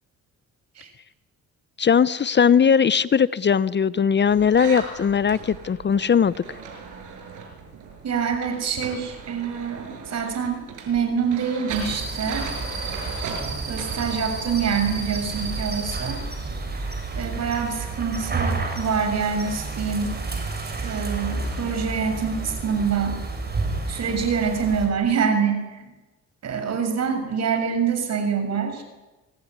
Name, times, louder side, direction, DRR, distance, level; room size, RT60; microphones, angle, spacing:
voice 1, 1.8-6.6, left 7 dB, 35° left, 18 dB, 0.8 m, -19 dB
sound 1, 4.3-16.9, right 5 dB, 90° right, 7.3 m, -39 dB
voice 2, 8.0-12.5 13.6-16.2 17.1-20.1 20.8-23.2 23.9-25.8 26.4-28.8, right 6 dB, 60° right, 6 dB, 6.9 m, -25 dB
sound 2, 11.7-24.9, right 3 dB, 35° right, 7.3 m, -30 dB
25.5 x 19.0 x 9.7 m, 1.1 s
cardioid pair, 90°, 30 cm